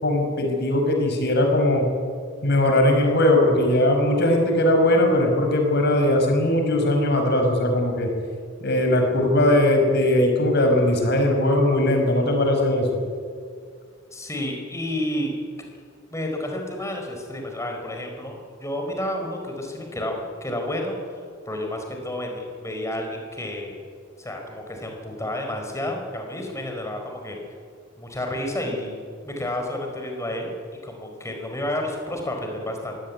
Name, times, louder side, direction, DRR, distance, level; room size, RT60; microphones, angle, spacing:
voice 1, 0.0-1.9 2.4-8.1 8.6-13.0, left 1 dB, 55° left, 3 dB, 5.3 m, -19 dB
voice 2, 14.1-15.3 16.1-23.8 24.2-27.4 28.0-30.5 30.8-33.0, left 1 dB, 15° left, 2 dB, 4.6 m, -30 dB
22.5 x 17.0 x 9.6 m, 2.1 s
head